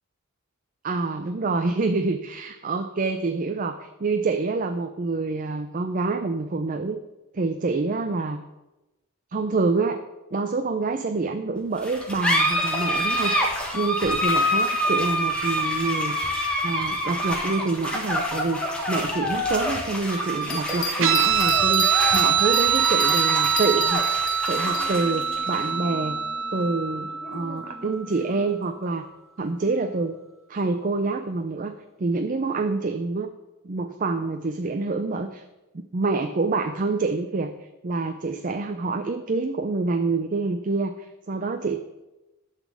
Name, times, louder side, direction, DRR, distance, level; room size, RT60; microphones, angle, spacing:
voice 1, 0.8-7.0 7.3-8.4 9.3-10.0 10.3-13.3 13.7-16.3 16.6-24.0 24.5-26.2 26.5-29.1 29.4-30.2 30.5-31.7 32.0-33.3 33.6-35.4 35.7-37.5 37.8-41.8, right 3 dB, 40° right, 7 dB, 0.5 m, -27 dB
sound 1, 11.8-28.8, equal, 5° left, 1.4 m, -27 dB
Bell, 20.4-24.8 25.3-25.4, left 4 dB, 60° left, 1.7 m, -31 dB
Guitar, 21.0-27.9, right 7 dB, 60° right, 1.2 m, -24 dB
11.5 x 4.1 x 7.4 m, 1.0 s
head